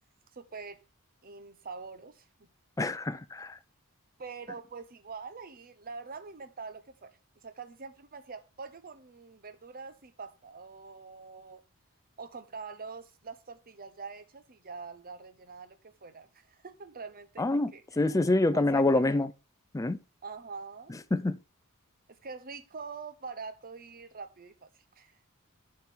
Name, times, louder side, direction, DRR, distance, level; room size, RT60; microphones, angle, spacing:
voice 1, 0.3-0.8 1.2-2.5 4.2-7.1 7.4-11.6 12.2-18.0 18.5-19.0 20.2-20.9 22.2-24.7 25.0-25.3, right 4 dB, 40° right, 0.9 m, -44 dB
voice 2, 2.8-3.6 17.4-19.3 19.7-20.0 20.9-21.4, left 2 dB, 15° left, 0.4 m, -27 dB
11.5 x 4.4 x 3.6 m
head